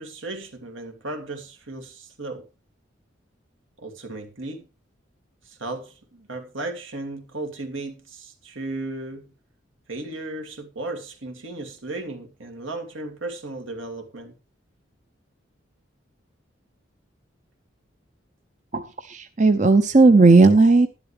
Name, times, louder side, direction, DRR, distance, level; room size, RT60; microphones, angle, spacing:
voice 1, 0.0-2.5 3.8-4.7 5.4-9.3 9.9-14.3, right 2 dB, 80° right, 2.6 m, -35 dB
voice 2, 18.7-20.9, right 3 dB, 35° right, 0.7 m, -15 dB
12.0 x 11.5 x 3.4 m
head